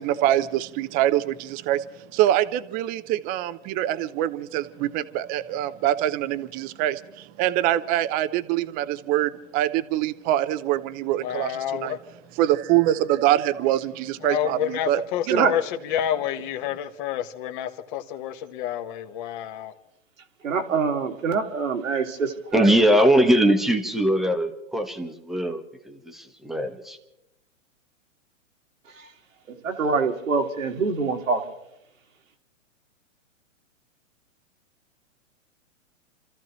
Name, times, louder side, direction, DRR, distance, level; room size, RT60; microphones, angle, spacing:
voice 1, 0.0-12.0 12.4-15.0 15.3-15.5, right 13 dB, 25° right, 0.6 m, -24 dB
voice 2, 11.2-12.0 14.2-19.7, left 10 dB, 40° left, 1.4 m, -29 dB
voice 3, 20.4-22.7 28.9-29.1 29.5-31.5, right 5 dB, 90° right, 2.3 m, -25 dB
voice 4, 22.5-27.0, right 1 dB, ahead, 1.1 m, -21 dB
30.0 x 14.0 x 3.1 m
hypercardioid pair, 135°, 38 cm